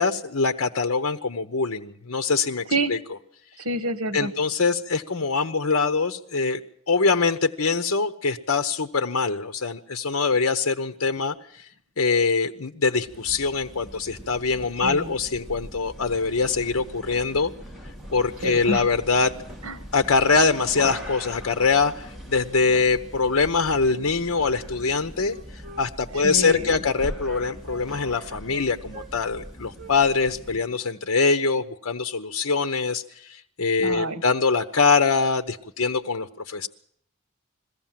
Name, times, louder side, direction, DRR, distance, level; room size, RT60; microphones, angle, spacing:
voice 1, 0.0-3.0 4.1-6.6 6.9-11.7 12.0-17.5 18.1-19.3 19.9-25.4 25.8-36.7, left 4 dB, 70° left, 8 dB, 0.9 m, -23 dB
voice 2, 3.6-4.3 14.8-15.1 18.4-18.9 19.6-19.8 26.1-26.8 33.8-34.2, right 1 dB, 80° right, 12 dB, 1.8 m, -28 dB
sound 1, 13.0-30.7, equal, ahead, 2.6 m, -41 dB
Wind instrument woodwind instrument, 24.8-29.5 29.8-30.8 31.1-31.3, right 1 dB, 35° right, 1.9 m, -46 dB
21.5 x 16.0 x 7.5 m, 0.66 s
head